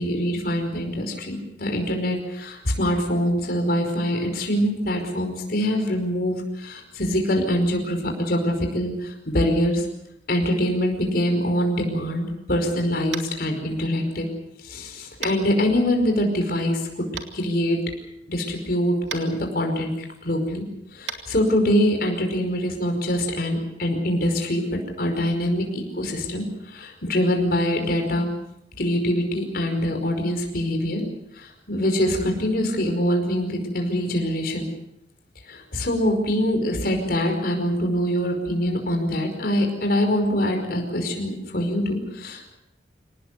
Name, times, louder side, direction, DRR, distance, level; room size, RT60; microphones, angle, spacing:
voice 1, 0.0-9.9 10.3-14.3 14.6-17.1 17.3-17.8 18.3-20.6 20.9-28.3 28.8-31.0 31.3-34.7 35.5-42.5, equal, 55° left, 3 dB, 5.1 m, -24 dB
Tap, 13.1-13.4 15.2-15.4 17.2-17.3 19.1-19.2 21.0-21.2, right 7 dB, 85° right, 2.6 m, -32 dB
25.5 x 19.0 x 8.2 m, 0.84 s
head